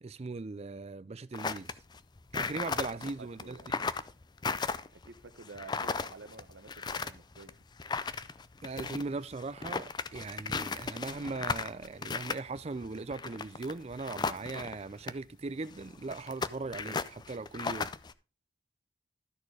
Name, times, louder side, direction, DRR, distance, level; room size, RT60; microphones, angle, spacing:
voice 1, 0.0-1.8 2.3-3.6 8.6-17.9, right 3 dB, 35° right, 0.5 m, -39 dB
sound 1, 1.3-14.7 15.0-15.1 15.7-18.1, left 4 dB, 25° left, 0.4 m, -36 dB
voice 2, 2.5-3.7 4.9-7.6, right 3 dB, 85° right, 0.9 m, -51 dB
12.5 x 4.4 x 4.7 m
head